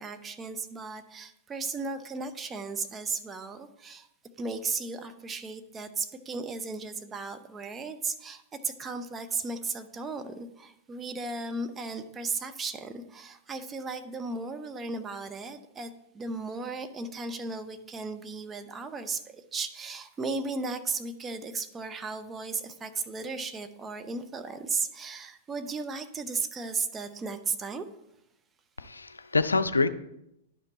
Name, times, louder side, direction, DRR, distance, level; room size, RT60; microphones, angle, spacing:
voice 1, 0.0-4.1 4.4-27.9, right 4 dB, 20° right, 8 dB, 0.8 m, -35 dB
voice 2, 28.8-29.9, left 3 dB, 85° left, 12 dB, 0.5 m, -26 dB
10.5 x 5.2 x 4.1 m, 0.82 s
figure-of-eight pair, 105°, 0 cm